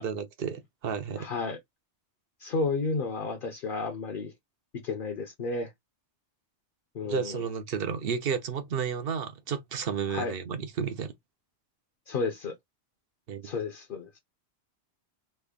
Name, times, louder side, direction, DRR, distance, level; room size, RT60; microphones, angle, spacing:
voice 1, 0.0-1.3 7.0-11.1 13.3-13.5, right 6 dB, 60° right, 0.8 m, -32 dB
voice 2, 1.2-1.6 2.4-4.3 4.7-5.7 6.9-7.4 10.1-10.3 12.1-12.5 13.4-14.2, left 4 dB, 55° left, 0.8 m, -32 dB
3.3 x 2.1 x 3.5 m
omnidirectional pair, 1.1 m